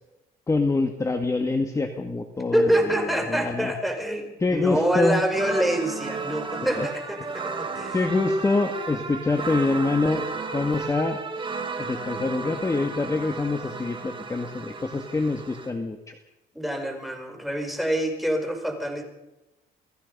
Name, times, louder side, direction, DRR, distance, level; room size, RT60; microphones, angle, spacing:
voice 1, 0.5-3.7 4.4-5.2 6.8-6.9 7.9-11.2 11.8-16.1, left 3 dB, 20° left, 6 dB, 1.9 m, -25 dB
voice 2, 2.5-8.1 16.5-19.0, right 1 dB, ahead, 3 dB, 5.3 m, -26 dB
sound 1, 5.3-15.7, right 4 dB, 30° right, 3.4 m, -34 dB
29.5 x 19.5 x 5.5 m, 0.95 s
cardioid pair, 110°, 17 cm